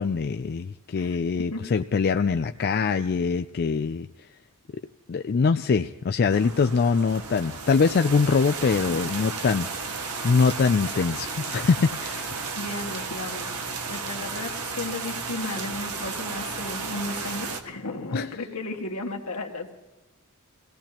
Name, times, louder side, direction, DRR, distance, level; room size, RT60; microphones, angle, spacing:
voice 1, 0.0-4.1 5.1-9.7 10.2-12.2 18.1-18.3, left 5 dB, 45° left, 8 dB, 0.4 m, -23 dB
voice 2, 0.9-1.6 8.9-9.1 12.5-19.7, left 2 dB, 80° left, 2 dB, 1.9 m, -35 dB
sound 1, 6.3-17.6, right 4 dB, 85° right, 1.5 m, -33 dB
23.5 x 17.0 x 3.0 m, 1.1 s
head